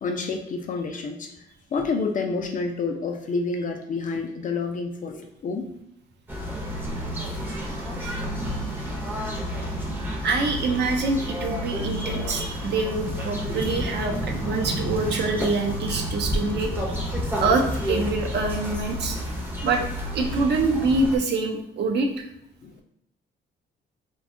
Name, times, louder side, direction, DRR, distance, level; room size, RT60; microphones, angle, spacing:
voice 1, 0.0-1.3 1.7-5.7 22.6-22.8, left 4 dB, 40° left, 4 dB, 0.4 m, -29 dB
sound 1, 6.3-21.2, equal, 10° right, 0.6 m, -30 dB
voice 2, 10.2-17.0 17.4-19.2 19.6-19.8 20.1-22.2, right 3 dB, 60° right, 3 dB, 0.6 m, -25 dB
2.6 x 2.2 x 2.5 m, 0.77 s
cardioid pair, 90°, 20 cm